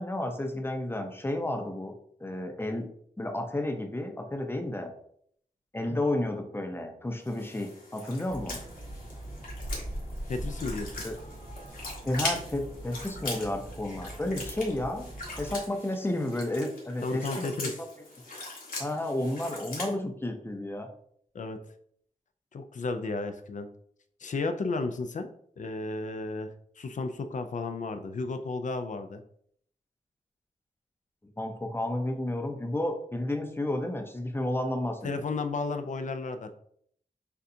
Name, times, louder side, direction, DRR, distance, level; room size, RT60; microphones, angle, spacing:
voice 1, 0.0-1.9 2.2-2.9 3.2-4.9 5.7-8.6 11.0-11.1 12.0-15.1 15.4-17.7 18.8-20.9 31.4-35.2, left 1 dB, 15° left, 4 dB, 0.7 m, -32 dB
sound 1, 7.2-19.9, left 2 dB, 75° left, 1.3 m, -41 dB
sound 2, 8.3-15.6, right 1 dB, 40° right, 1.2 m, -41 dB
voice 2, 10.3-11.0 17.0-17.8 21.3-21.6 22.5-23.7 24.2-25.3 25.6-29.2 35.0-36.6, left 3 dB, 60° left, 8 dB, 0.4 m, -33 dB
6.7 x 2.4 x 2.7 m, 0.65 s
wide cardioid pair, 105°, 15 cm